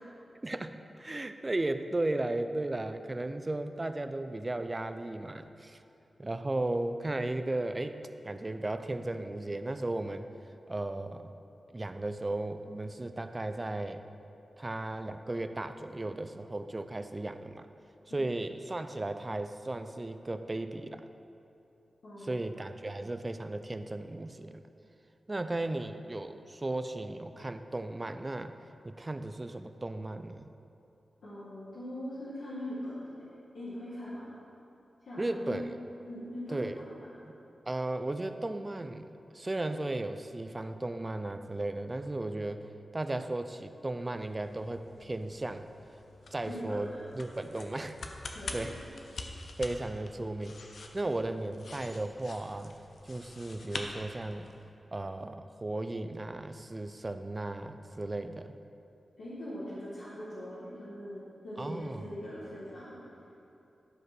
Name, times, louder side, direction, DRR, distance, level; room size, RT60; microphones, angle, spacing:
voice 1, 0.4-5.8 6.2-8.0 8.2-10.3 10.7-11.3 11.7-14.0 14.6-17.7 18.1-21.0 22.2-24.6 25.3-28.5 28.8-30.5 35.2-35.7 36.5-36.8 37.7-39.1 39.3-42.6 42.9-45.7 46.3-48.0 48.5-48.8 49.6-50.6 50.9-52.7 53.0-54.5 54.9-58.5 61.6-62.1, right 2 dB, 25° right, 9 dB, 0.5 m, -35 dB
voice 2, 22.0-22.5 31.2-34.3 35.0-35.6 36.1-37.1 46.5-47.0 48.3-48.7 59.2-63.0, left 1 dB, 90° left, -10 dB, 2.0 m, -41 dB
sound 1, 43.9-54.7, left 3 dB, 75° left, 0.8 m, -46 dB
12.0 x 5.1 x 6.1 m, 2.8 s
wide cardioid pair, 75°, 0 cm